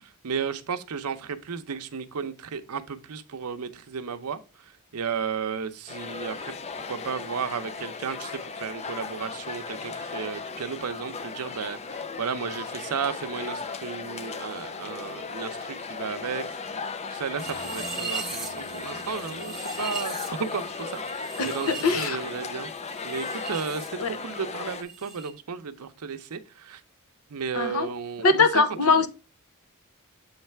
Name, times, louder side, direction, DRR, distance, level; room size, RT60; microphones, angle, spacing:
voice 1, 0.0-6.6 6.9-22.7 23.0-26.8 27.3-28.5 28.9-29.0, right 6 dB, 85° right, 0.6 m, -34 dB
sound 1, 5.9-24.8, left 5 dB, 30° left, 0.4 m, -36 dB
sound 2, 17.4-23.9 24.1-25.3, right 4 dB, ahead, 1.2 m, -39 dB
voice 2, 21.4-22.2 24.0-24.1 27.5-27.9 28.2-29.1, left 4 dB, 70° left, 0.8 m, -22 dB
7.3 x 3.2 x 4.4 m
head